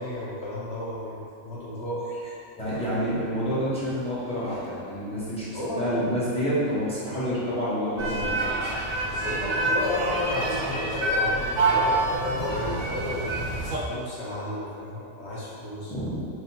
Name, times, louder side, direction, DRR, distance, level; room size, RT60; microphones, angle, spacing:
voice 1, 0.0-2.1 5.5-6.0 9.2-13.3 13.8-15.9, left 1 dB, 55° left, -7 dB, 1.0 m, -32 dB
voice 2, 2.6-8.4 12.3-12.5 15.9-16.3, equal, 5° left, -11 dB, 0.9 m, -28 dB
sound 1, 8.0-13.8, right 2 dB, 60° right, 0.5 m, -27 dB
6.1 x 2.4 x 2.8 m, 2.6 s
omnidirectional pair, 1.5 m